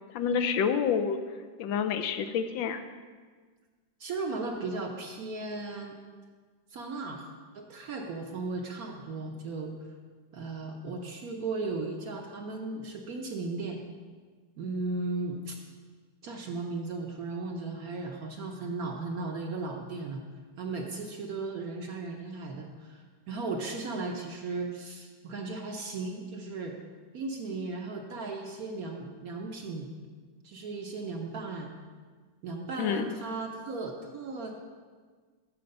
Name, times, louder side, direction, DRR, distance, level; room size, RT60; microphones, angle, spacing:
voice 1, 0.1-1.2 1.6-2.8 32.8-33.2, left 7 dB, 80° left, 8 dB, 1.3 m, -28 dB
voice 2, 4.0-6.0 6.7-7.3 7.5-9.7 10.3-13.8 14.6-15.6 16.2-20.2 20.6-26.8 27.1-29.9 30.4-31.7 32.4-34.5, right 3 dB, 60° right, 2 dB, 1.1 m, -36 dB
13.5 x 4.5 x 5.3 m, 1.5 s
omnidirectional pair, 2.1 m